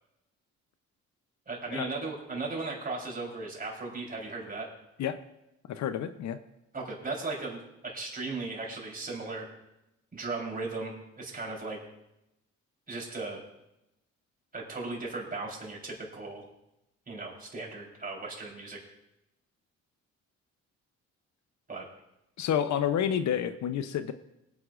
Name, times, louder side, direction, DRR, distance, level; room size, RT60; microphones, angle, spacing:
voice 1, 1.5-4.7 6.7-7.6 7.9-9.5 10.1-11.8 12.9-13.4 14.5-16.4 17.1-18.8 21.7-21.9, right 3 dB, 30° right, -2 dB, 3.9 m, -37 dB
voice 2, 5.7-6.4 22.4-24.1, left 9 dB, 65° left, 10 dB, 0.7 m, -29 dB
21.5 x 9.5 x 2.5 m, 0.88 s
cardioid pair, 90°, 30 cm